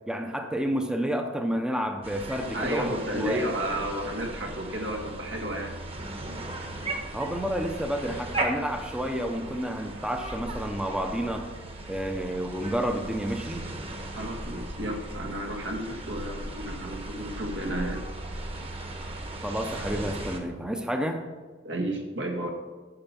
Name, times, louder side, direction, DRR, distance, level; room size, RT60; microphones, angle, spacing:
voice 1, 0.1-3.4 7.1-11.5 11.9-13.7 19.4-21.2, equal, 5° right, 5 dB, 0.6 m, -30 dB
sound 1, 2.0-20.4, right 2 dB, 30° right, 1.2 m, -37 dB
voice 2, 2.5-5.7 14.1-18.0 21.6-22.5, right 1 dB, 85° right, 1 dB, 1.8 m, -32 dB
8.8 x 7.2 x 5.9 m, 1.3 s
head